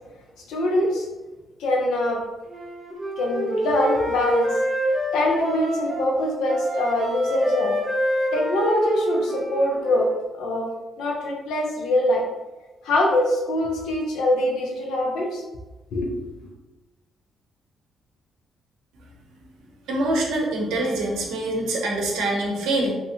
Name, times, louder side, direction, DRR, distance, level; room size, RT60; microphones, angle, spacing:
voice 1, 0.5-1.1 1.6-2.2 3.2-4.5 5.1-7.7 8.3-10.1 10.4-10.7 11.0-12.2 12.8-15.4 15.9-16.1 16.4-16.5, left 1 dB, 80° left, -1 dB, 0.7 m, -23 dB
Wind instrument woodwind instrument, 2.5-6.1 6.5-10.1, equal, 15° right, 1.1 m, -26 dB
voice 2, 19.9-22.9, right 1 dB, 85° right, 0 dB, 0.7 m, -25 dB
2.8 x 2.7 x 2.6 m, 1.1 s
cardioid pair, 90°, 0 cm